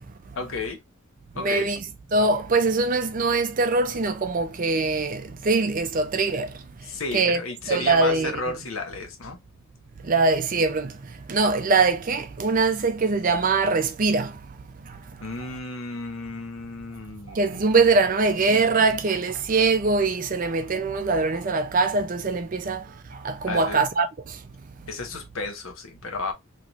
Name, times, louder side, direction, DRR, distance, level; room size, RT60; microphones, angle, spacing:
voice 1, 0.4-0.8 1.4-1.7 6.8-9.4 15.2-17.8 23.5-23.9 24.9-26.3, left 3 dB, 70° left, 0.8 m, -33 dB
voice 2, 1.4-1.8 2.1-6.5 7.1-7.4 7.7-8.3 10.0-14.4 14.9-15.0 17.3-24.4, right 3 dB, 40° right, 0.4 m, -23 dB
3.0 x 2.9 x 2.5 m
head